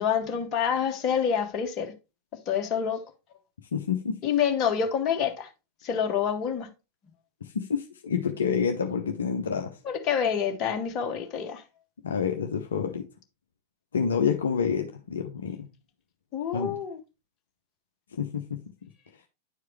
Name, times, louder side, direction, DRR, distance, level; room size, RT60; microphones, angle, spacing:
voice 1, 0.0-1.9 2.4-3.0 4.2-5.5 5.8-6.7 9.8-11.6 16.3-17.0, left 7 dB, 35° left, 1.5 m, -27 dB
voice 2, 3.7-4.2 7.4-9.8 12.0-13.1 13.9-15.7 16.5-16.8 18.1-18.6, left 6 dB, 65° left, 0.8 m, -28 dB
9.9 x 4.7 x 3.2 m
figure-of-eight pair, 90°, 0 cm